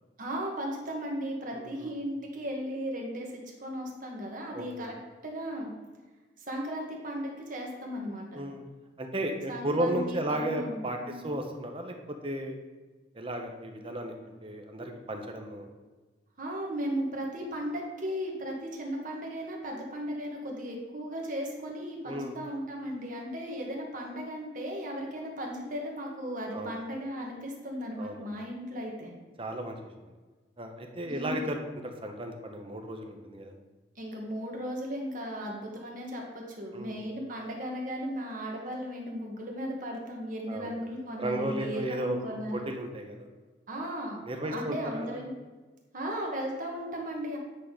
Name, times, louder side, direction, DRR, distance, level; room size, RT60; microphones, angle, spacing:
voice 1, 0.2-3.3 3.6-4.9 5.2-5.7 6.4-8.4 9.5-11.3 16.4-29.1 31.0-31.5 33.9-42.7 43.7-45.3 45.9-47.4, equal, 50° right, 0 dB, 1.5 m, -36 dB
voice 2, 1.5-1.9 4.5-4.9 8.3-8.6 9.0-11.0 11.2-11.9 12.2-12.6 13.1-15.7 22.0-22.4 26.5-26.8 28.0-28.3 29.4-29.8 30.0-30.1 30.6-33.5 36.7-37.0 40.5-40.8 41.2-43.3 44.2-45.2, right 1 dB, 30° right, 4 dB, 0.8 m, -34 dB
8.5 x 4.1 x 4.9 m, 1.3 s
head